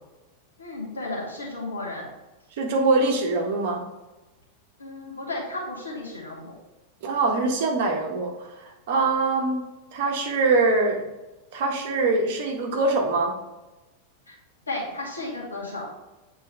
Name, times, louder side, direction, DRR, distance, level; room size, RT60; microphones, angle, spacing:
voice 1, 0.6-2.1 4.8-6.5 14.3-14.4 14.7-15.9, left 2 dB, 75° left, -4 dB, 2.3 m, -33 dB
voice 2, 2.6-3.8 7.0-8.3 8.6-9.6 9.9-11.0 11.5-13.3, right 3 dB, 50° right, 2 dB, 1.3 m, -23 dB
8.2 x 4.5 x 3.2 m, 1.1 s
figure-of-eight pair, 90°, 0 cm